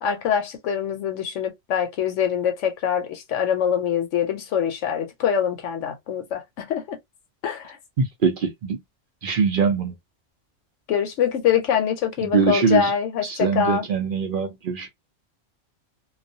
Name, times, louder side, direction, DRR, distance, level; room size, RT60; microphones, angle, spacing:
voice 1, 0.0-7.0 7.4-7.8 10.9-13.9, left 8 dB, 75° left, 0.9 m, -24 dB
voice 2, 8.0-8.8 9.2-9.9 12.3-12.9 13.2-14.9, right 5 dB, 55° right, 0.6 m, -22 dB
2.3 x 2.2 x 2.6 m
omnidirectional pair, 1.3 m